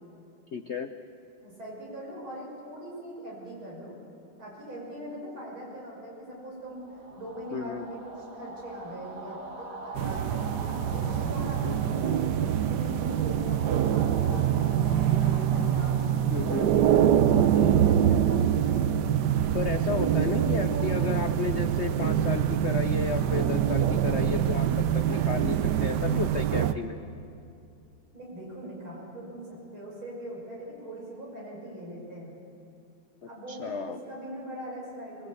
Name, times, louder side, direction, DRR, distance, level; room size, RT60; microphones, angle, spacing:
voice 1, 0.5-0.9 7.5-7.8 11.6-11.8 16.3-16.7 19.5-24.7 24.9-27.0 33.5-34.0, left 6 dB, 80° left, 8 dB, 0.6 m, -33 dB
voice 2, 1.4-3.9 4.4-12.2 12.7-16.1 16.9-18.9 20.4-21.0 21.4-21.5 28.1-32.3 33.3-35.3, right 1 dB, 80° right, -3 dB, 6.9 m, -41 dB
sound 1, 6.7-17.8, right 2 dB, 45° right, 2.1 m, -43 dB
sound 2, 9.9-26.7, right 9 dB, 65° right, 1.2 m, -25 dB
22.5 x 21.0 x 8.3 m, 2.6 s
omnidirectional pair, 2.2 m